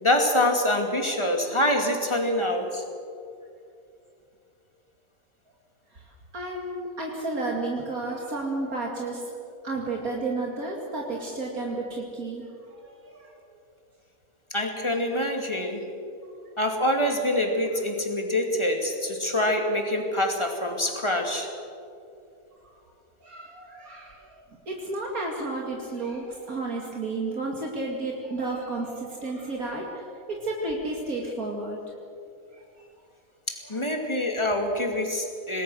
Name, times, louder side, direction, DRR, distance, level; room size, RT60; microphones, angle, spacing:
voice 1, 0.0-2.8 14.5-15.8 16.6-21.5 33.5-35.6, left 1 dB, 20° left, 3 dB, 2.6 m, -25 dB
voice 2, 5.9-9.3 9.6-13.4 16.2-16.3 17.7-17.8 19.0-19.1 22.6-22.8 23.2-31.8 32.5-32.9 33.6-34.4, right 2 dB, 70° right, -1 dB, 2.8 m, -32 dB
27.0 x 19.5 x 6.4 m, 2.6 s
omnidirectional pair, 1.5 m